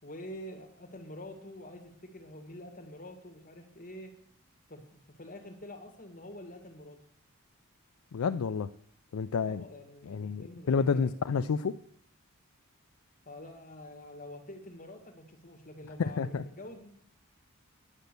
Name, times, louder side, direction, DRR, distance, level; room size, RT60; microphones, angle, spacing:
voice 1, 0.0-4.1 4.7-7.0 9.4-11.1 13.3-16.9, left 1 dB, 35° left, 3 dB, 1.9 m, -47 dB
voice 2, 8.1-8.7 9.1-9.6 10.0-11.8 16.0-16.4, left 5 dB, 80° left, 10 dB, 0.4 m, -29 dB
9.9 x 9.0 x 6.8 m, 0.63 s
head